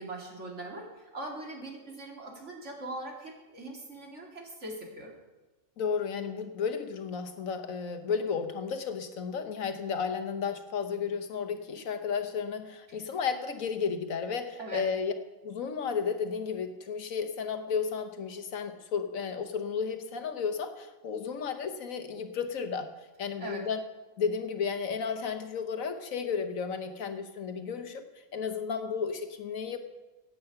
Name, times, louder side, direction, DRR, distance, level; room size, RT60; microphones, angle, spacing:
voice 1, 0.0-5.1 12.9-13.0 14.6-14.8 23.4-23.6, right 2 dB, 60° right, 0 dB, 2.6 m, -41 dB
voice 2, 5.8-15.1 15.4-22.9 23.2-23.8 24.2-28.0 28.3-29.8, left 6 dB, 80° left, 8 dB, 1.5 m, -33 dB
15.5 x 8.7 x 5.8 m, 1.1 s
omnidirectional pair, 1.4 m